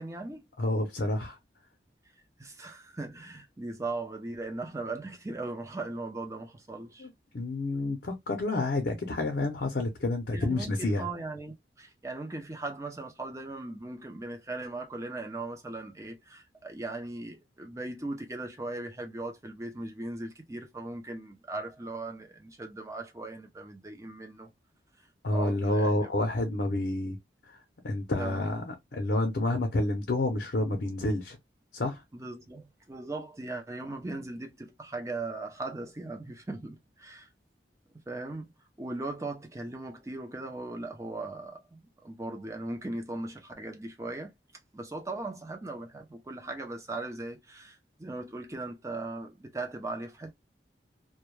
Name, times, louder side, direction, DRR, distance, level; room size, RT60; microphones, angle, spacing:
voice 1, 0.0-0.4 2.4-7.1 10.3-24.5 25.0-26.1 28.2-28.5 32.1-37.3 38.1-38.5 38.8-44.3 44.7-50.3, right 2 dB, 15° right, 0.5 m, -38 dB
voice 2, 0.6-1.4 7.0-11.1 25.2-27.2 27.4-27.6 27.8-31.4 31.7-32.0, left 2 dB, 60° left, 0.6 m, -29 dB
2.2 x 2.2 x 3.0 m
head